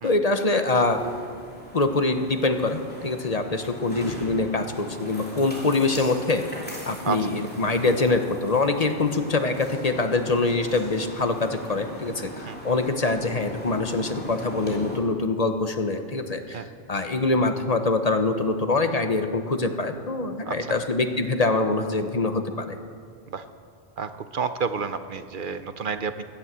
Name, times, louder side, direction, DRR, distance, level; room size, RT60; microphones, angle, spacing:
voice 1, 0.0-1.0 1.7-6.4 6.9-22.8, left 3 dB, 40° left, 7 dB, 0.9 m, -24 dB
sound 1, 0.8-15.0, equal, 10° left, 3.0 m, -39 dB
voice 2, 20.4-20.8 23.3-23.4 24.0-26.3, right 5 dB, 60° right, 10 dB, 0.8 m, -30 dB
16.0 x 11.0 x 7.4 m, 2.1 s
omnidirectional pair, 1.0 m